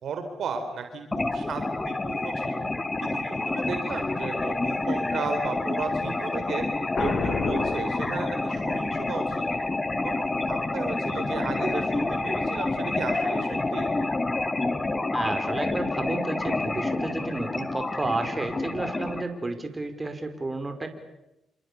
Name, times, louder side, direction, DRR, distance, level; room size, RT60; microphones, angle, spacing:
voice 1, 0.0-2.7 3.0-6.6 7.0-9.6 10.0-13.9, right 5 dB, 65° right, 6 dB, 3.8 m, -35 dB
sound 1, 1.1-19.2, left 2 dB, 25° left, 3.0 m, -28 dB
Boom, 6.9-8.8, left 4 dB, 55° left, 3.4 m, -31 dB
voice 2, 15.1-20.9, right 2 dB, 25° right, 7 dB, 5.1 m, -31 dB
29.0 x 26.0 x 7.0 m, 0.90 s
supercardioid pair, 55°, 0 cm